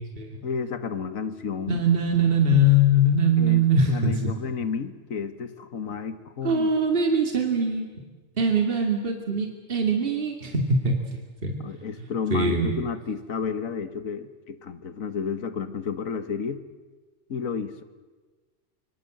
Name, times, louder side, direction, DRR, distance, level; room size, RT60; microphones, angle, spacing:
voice 1, 0.4-1.8 3.4-6.7 11.6-16.6 17.3-17.8, left 6 dB, 90° left, 11 dB, 1.8 m, -31 dB
voice 2, 1.7-4.3 6.4-7.9 8.4-11.0 11.4-11.5 12.3-12.7, right 1 dB, 45° right, 3 dB, 2.6 m, -22 dB
26.0 x 24.0 x 7.7 m, 1.3 s
omnidirectional pair, 1.4 m